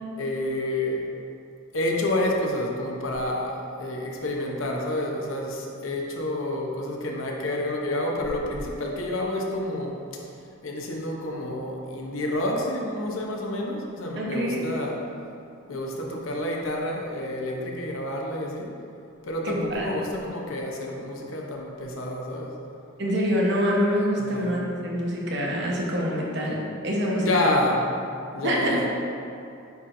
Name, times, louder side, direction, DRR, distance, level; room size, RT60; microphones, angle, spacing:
voice 1, 0.2-1.1 1.7-10.0 10.6-15.0 15.7-18.7 19.2-22.5 24.2-24.5 27.2-27.8 28.3-28.9, left 1 dB, 80° left, -1 dB, 0.8 m, -29 dB
voice 2, 14.2-14.7 19.4-19.9 23.0-27.5 28.4-28.8, equal, 55° right, -3 dB, 1.0 m, -25 dB
9.2 x 4.3 x 2.5 m, 2.6 s
head